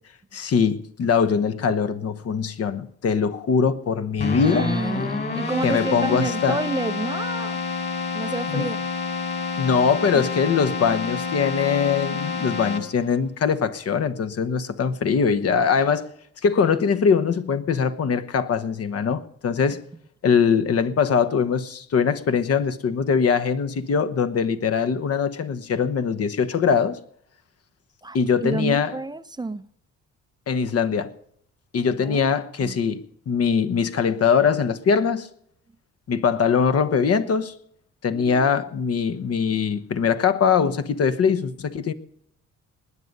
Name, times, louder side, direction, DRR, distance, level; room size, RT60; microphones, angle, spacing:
voice 1, 0.3-4.7 5.6-6.6 8.5-8.7 9.6-16.1 16.4-19.8 20.2-27.0 28.1-29.0 30.5-31.1 31.7-35.3 36.1-37.5 38.0-41.9, left 6 dB, 55° left, 1.1 m, -22 dB
Keyboard (musical), 4.2-13.2, left 4 dB, 35° left, 2.9 m, -28 dB
voice 2, 4.4-7.6 8.1-8.8 12.1-12.3 28.0-29.7 32.0-32.2 32.6-32.8 38.1-38.5, right 3 dB, 15° right, 0.6 m, -30 dB
19.5 x 9.6 x 5.3 m
cardioid pair, 90°, 30 cm